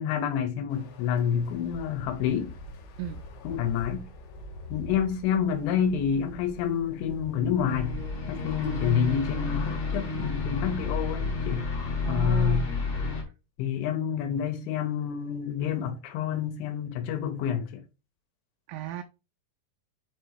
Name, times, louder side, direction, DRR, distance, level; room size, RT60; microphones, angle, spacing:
voice 1, 0.0-2.5 3.4-4.1 4.7-7.9 8.3-11.6 12.1-12.6 13.6-17.8, left 8 dB, 90° left, 3.3 m, -28 dB
sound 1, 0.7-8.4, left 1 dB, 70° left, 2.7 m, -44 dB
sound 2, 7.7-13.2, left 4 dB, 45° left, 2.1 m, -30 dB
voice 2, 12.0-12.8 18.7-19.0, right 12 dB, 85° right, 2.8 m, -35 dB
7.5 x 3.2 x 4.6 m
omnidirectional pair, 5.3 m